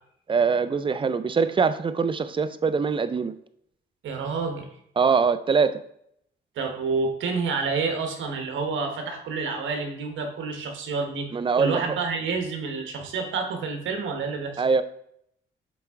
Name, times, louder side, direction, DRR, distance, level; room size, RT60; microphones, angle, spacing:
voice 1, 0.3-3.3 5.0-5.8 11.3-12.0 14.6-14.8, right 5 dB, 25° right, 12 dB, 0.5 m, -23 dB
voice 2, 4.0-4.7 6.6-11.3 11.6-14.6, right 4 dB, 75° right, 4 dB, 1.3 m, -28 dB
6.9 x 4.4 x 3.6 m, 0.73 s
cardioid pair, 90°, 20 cm